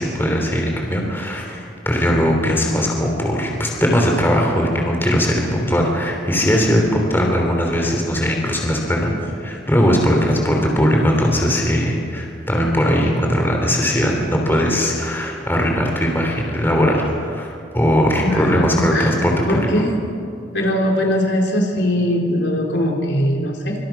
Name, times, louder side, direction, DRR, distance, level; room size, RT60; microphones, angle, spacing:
voice 1, 0.0-19.7, equal, 10° left, 1 dB, 3.3 m, -19 dB
voice 2, 18.2-19.9 20.5-23.8, left 1 dB, 65° left, 1 dB, 3.7 m, -21 dB
26.5 x 25.5 x 6.0 m, 2.5 s
head